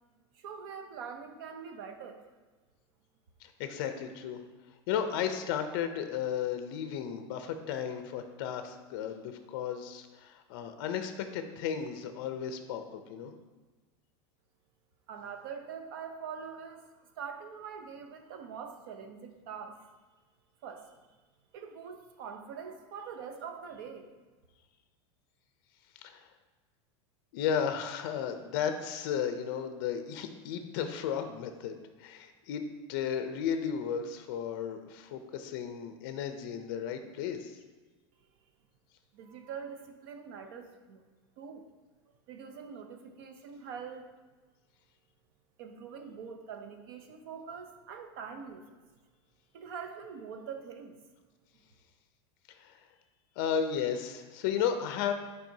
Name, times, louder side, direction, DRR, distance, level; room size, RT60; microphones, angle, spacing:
voice 1, 0.3-2.2 15.1-16.9 17.2-19.9 20.6-20.9 21.5-24.1 39.1-41.0 41.4-41.6 42.3-44.0 45.6-48.7 49.5-51.0, right 6 dB, 50° right, 6 dB, 0.6 m, -44 dB
voice 2, 3.4-4.4 4.9-13.3 26.0-26.3 27.3-31.7 32.0-32.6 32.9-37.6 52.5-52.8 53.4-55.1, left 8 dB, 50° left, 7 dB, 0.5 m, -34 dB
7.4 x 4.7 x 2.7 m, 1.3 s
supercardioid pair, 175°, 14 cm